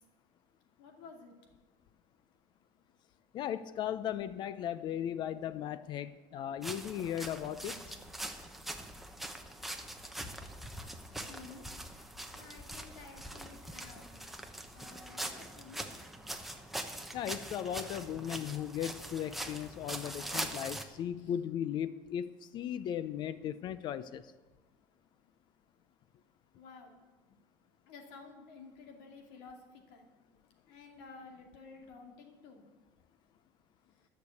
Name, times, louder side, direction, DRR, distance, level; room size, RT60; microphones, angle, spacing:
voice 1, 0.8-1.3 7.7-7.8 11.1-11.7 12.3-14.2 14.7-15.9 21.2-21.3 26.5-26.9 27.3-27.4 27.9-30.1 30.7-32.7, left 4 dB, 75° left, 3 dB, 2.6 m, -52 dB
voice 2, 3.3-7.7 17.1-24.2, left 10 dB, 45° left, 15 dB, 0.5 m, -37 dB
sound 1, 6.6-20.8, right 1 dB, ahead, 1.0 m, -43 dB
13.5 x 6.7 x 8.3 m, 1.2 s
cardioid pair, 140°, 11 cm